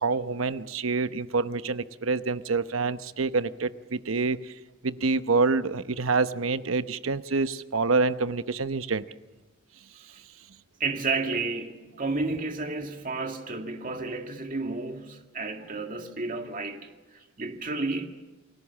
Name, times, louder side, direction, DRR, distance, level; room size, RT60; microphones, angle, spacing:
voice 1, 0.0-4.5 4.8-9.0, right 4 dB, 85° right, 0.9 m, -27 dB
voice 2, 10.8-18.1, right 3 dB, 40° right, 2.1 m, -32 dB
29.5 x 20.5 x 7.3 m
head